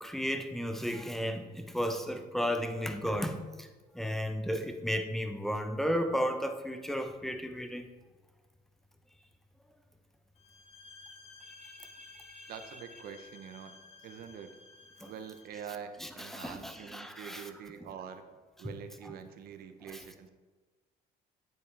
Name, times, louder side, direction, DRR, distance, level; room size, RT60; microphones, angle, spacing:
voice 1, 0.0-3.7 3.9-7.9 11.6-11.7 12.1-12.5 15.0-15.1 16.0-17.4, equal, ahead, 7 dB, 0.7 m, -34 dB
sound 1, 10.4-15.6, left 4 dB, 35° left, 1.5 m, -54 dB
voice 2, 12.5-13.8 14.0-14.5 15.0-18.2 18.6-20.3, right 8 dB, 65° right, 8 dB, 0.9 m, -45 dB
9.0 x 8.3 x 3.4 m, 1.3 s
cardioid pair, 110°, 17 cm